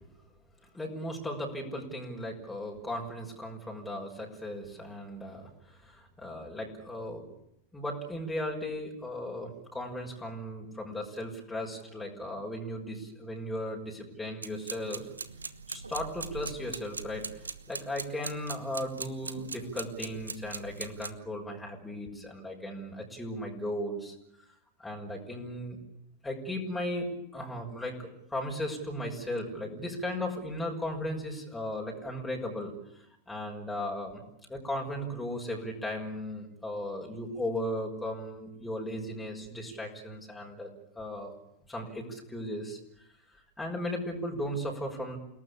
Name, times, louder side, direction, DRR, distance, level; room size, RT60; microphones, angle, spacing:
voice 1, 0.7-7.3 7.7-15.1 15.7-17.3 17.7-24.1 24.8-25.8 26.2-32.7 33.3-34.2 34.5-41.3 41.7-42.8 43.3-45.2, left 1 dB, 5° left, -1 dB, 6.2 m, -36 dB
sound 1, 14.4-21.1, right 4 dB, 75° right, 1.3 m, -41 dB
29.5 x 19.0 x 8.6 m, 0.78 s
figure-of-eight pair, 90°, 0 cm